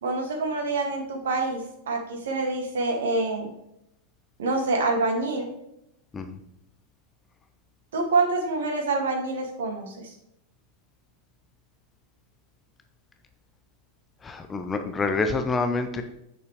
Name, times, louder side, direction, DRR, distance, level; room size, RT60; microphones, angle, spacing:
voice 1, 0.0-3.5 4.4-5.5 7.9-9.9, right 3 dB, 60° right, 2 dB, 1.8 m, -26 dB
voice 2, 14.2-16.0, left 3 dB, 20° left, 7 dB, 0.7 m, -27 dB
8.2 x 6.8 x 3.1 m, 0.82 s
figure-of-eight pair, 90°, 0 cm